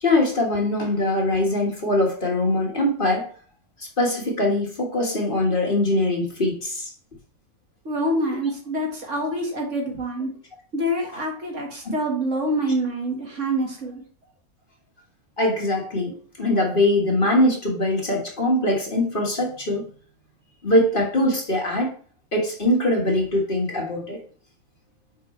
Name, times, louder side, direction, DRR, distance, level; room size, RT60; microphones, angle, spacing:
voice 1, 0.0-3.3 4.0-6.9 11.8-11.9 15.4-19.8 20.6-21.9 22.3-24.2, left 1 dB, 35° left, 1.6 m, -22 dB
voice 2, 7.9-10.3 10.7-14.0, right 1 dB, 55° right, 1.9 m, -26 dB
7.3 x 5.2 x 3.2 m
omnidirectional pair, 1.6 m